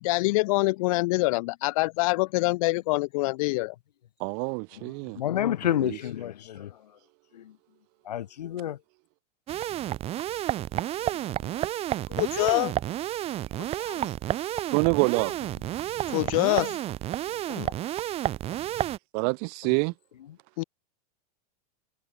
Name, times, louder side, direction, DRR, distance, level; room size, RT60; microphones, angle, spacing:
voice 1, 0.0-3.7 12.1-12.7 16.1-16.8 20.6-20.7, left 23 dB, 55° left, 4.0 m, -25 dB
voice 2, 4.2-5.2 5.7-6.0 14.7-15.3 19.1-19.9, right 40 dB or more, 50° right, 4.2 m, -26 dB
voice 3, 5.2-6.7 7.3-7.5 8.1-8.8 13.8-14.1 17.5-17.7, left 11 dB, 90° left, 4.4 m, -30 dB
sound 1, 9.5-19.0, right 13 dB, 30° right, 2.6 m, -31 dB
supercardioid pair, 140°, 20 cm